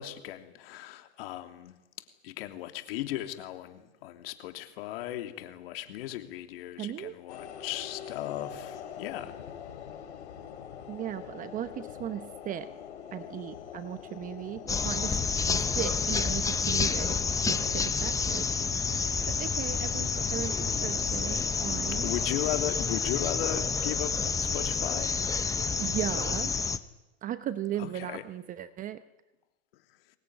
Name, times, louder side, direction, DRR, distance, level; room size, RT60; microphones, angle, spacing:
voice 1, 0.0-1.8 2.2-9.3 22.0-25.2 27.8-28.2, left 13 dB, 60° left, 7 dB, 3.1 m, -36 dB
voice 2, 6.8-7.1 10.9-12.7 13.1-15.5 15.7-17.2 17.5-18.5 19.3-22.1 25.8-26.5 27.2-29.0, right 11 dB, 25° right, 12 dB, 0.9 m, -37 dB
sound 1, 7.3-21.2, left 8 dB, 85° left, 4.1 m, -45 dB
sound 2, 14.7-26.8, left 5 dB, 10° left, 0.9 m, -29 dB
23.5 x 19.5 x 9.7 m, 1.0 s
supercardioid pair, 140°, 33 cm